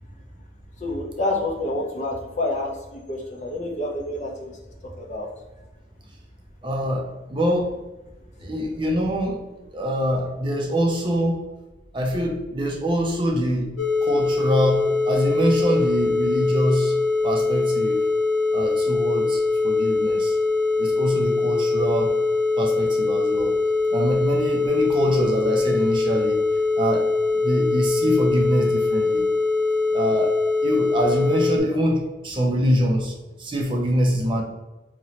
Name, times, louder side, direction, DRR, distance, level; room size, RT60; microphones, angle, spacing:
voice 1, 0.8-4.6 5.0-5.3, left 2 dB, 35° left, 0 dB, 0.6 m, -28 dB
voice 2, 6.6-7.7 8.4-9.4 9.7-11.4 11.9-13.7 14.0-17.0 17.2-18.0 18.5-20.4 20.8-22.1 22.6-23.6 23.9-26.4 26.8-27.1 27.4-29.2 29.9-30.4 30.6-34.4, equal, 25° right, 1 dB, 0.5 m, -24 dB
sound 1, 13.8-31.6, left 3 dB, 90° left, 0.6 m, -22 dB
2.9 x 2.7 x 4.2 m, 1.1 s
head